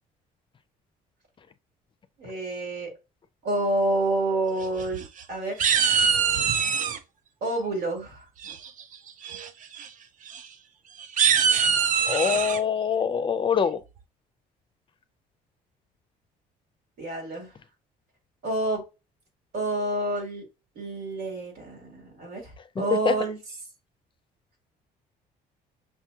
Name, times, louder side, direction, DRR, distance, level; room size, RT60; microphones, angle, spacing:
voice 1, 2.2-2.9 3.4-5.0 5.3-5.7 7.4-8.2 17.0-17.5 18.4-18.8 19.5-20.5 20.8-23.4, right 2 dB, 90° right, 2.1 m, -28 dB
sound 1, 4.6-5.2 5.6-7.0 8.4-8.8 9.2-9.5 9.7-9.9 10.3-10.4 11.0-12.6, right 7 dB, 50° right, 0.5 m, -23 dB
voice 2, 12.1-13.8 22.6-22.7 22.9-23.2, left 7 dB, 30° left, 0.4 m, -24 dB
5.7 x 2.9 x 2.3 m
cardioid pair, 110°, 17 cm